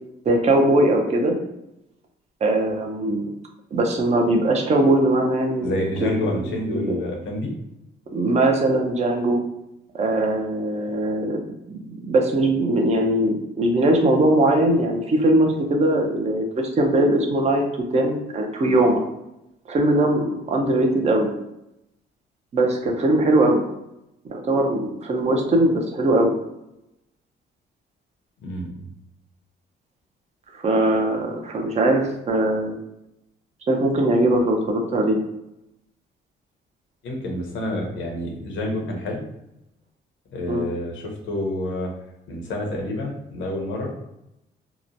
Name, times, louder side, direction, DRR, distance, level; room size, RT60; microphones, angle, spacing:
voice 1, 0.2-1.3 2.4-3.3 3.7-5.7 6.0-7.0 8.1-9.4 9.9-11.4 11.7-17.7 17.9-19.0 19.7-21.3 22.5-23.6 24.3-26.4 30.5-32.8 33.7-35.2 40.5-40.7, right 1 dB, 35° right, 2 dB, 0.5 m, -20 dB
voice 2, 5.6-7.5 28.4-28.9 37.0-39.2 40.3-41.9 42.3-43.9, left 1 dB, 75° left, 1 dB, 0.8 m, -28 dB
2.9 x 2.1 x 2.6 m, 0.85 s
cardioid pair, 90°, 20 cm